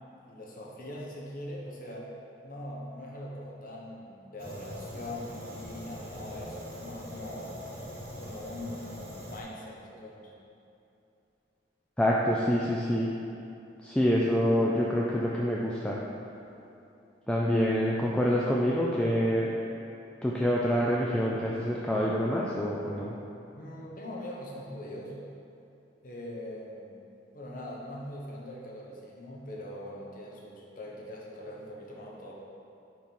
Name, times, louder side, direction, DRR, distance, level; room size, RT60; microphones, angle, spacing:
voice 1, 0.3-2.1 2.4-7.6 8.2-10.3 23.5-25.2 26.0-27.0 27.3-32.3, left 1 dB, 50° left, -3 dB, 1.0 m, -42 dB
Fire, 4.4-9.4, equal, 60° right, 1.2 m, -42 dB
voice 2, 12.0-13.1 13.8-16.0 17.3-19.6 20.2-23.1, equal, 5° left, -4 dB, 0.4 m, -26 dB
4.7 x 4.5 x 5.3 m, 2.8 s
head